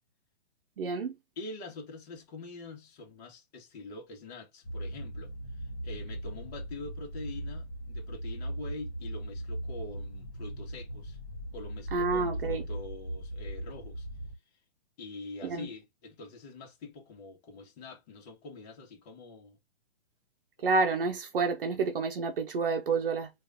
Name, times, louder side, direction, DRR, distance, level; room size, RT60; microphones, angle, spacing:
voice 1, 0.8-1.2 11.9-12.6 15.4-15.7 20.6-23.3, right 4 dB, 55° right, 0.9 m, -29 dB
voice 2, 1.4-5.3 5.8-11.2 11.5-14.1 15.0-19.6, left 3 dB, 40° left, 1.7 m, -45 dB
sound 1, 4.6-14.3, right 1 dB, 55° left, 2.0 m, -38 dB
4.6 x 2.7 x 3.6 m
figure-of-eight pair, 120°, 32 cm